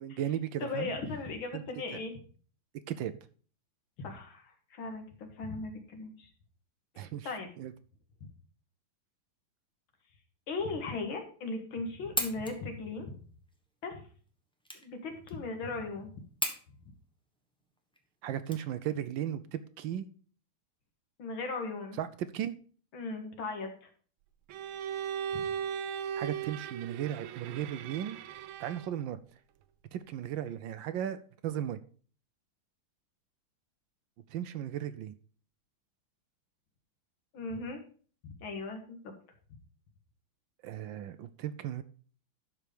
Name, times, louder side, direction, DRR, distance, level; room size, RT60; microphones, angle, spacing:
voice 1, 0.0-0.9 1.5-1.6 1.9-2.0 2.9-3.1 7.0-7.3 7.6-7.7 18.2-20.1 22.0-22.5 26.2-28.2 28.6-29.2 29.9-31.8 34.3-35.1 40.6-41.8, right 10 dB, 75° right, 13 dB, 1.3 m, -36 dB
voice 2, 0.6-2.1 4.0-6.3 6.9-7.5 10.5-13.1 13.8-14.0 14.8-16.2 21.2-22.0 22.9-23.9 25.3-25.5 37.3-37.8 38.2-39.1, left 3 dB, 75° left, 5 dB, 2.4 m, -38 dB
sound 1, 11.8-19.2, equal, 5° left, 0.9 m, -40 dB
Bowed string instrument, 24.5-29.0, right 8 dB, 90° right, 1.5 m, -38 dB
11.5 x 4.7 x 5.1 m, 0.42 s
omnidirectional pair, 2.2 m